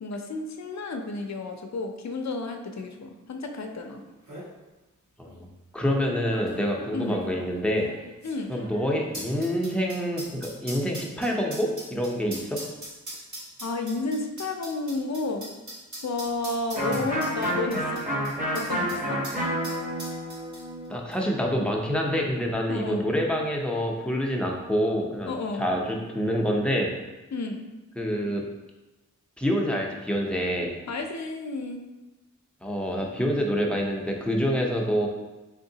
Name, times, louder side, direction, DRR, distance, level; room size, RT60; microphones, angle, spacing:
voice 1, 0.0-4.0 6.9-7.2 8.2-8.5 13.6-15.5 16.0-17.8 18.5-19.2 22.7-23.0 25.3-25.6 27.3-27.6 30.9-31.8, left 3 dB, 60° left, 4 dB, 0.5 m, -31 dB
sound 1, 3.7-3.8 4.1-4.5 5.3-5.4 6.3-19.0 19.2-19.4 19.6-20.9 21.1-21.2, right 1 dB, 70° right, 1.4 m, -41 dB
voice 2, 5.7-7.9 8.5-12.6 20.9-26.9 28.0-28.4 29.4-30.7 32.6-35.1, equal, 5° left, -1 dB, 0.6 m, -27 dB
Electric guitar, 16.7-22.4, equal, 25° right, 0.9 m, -30 dB
3.7 x 3.5 x 2.7 m, 1.1 s
wide cardioid pair, 90°, 31 cm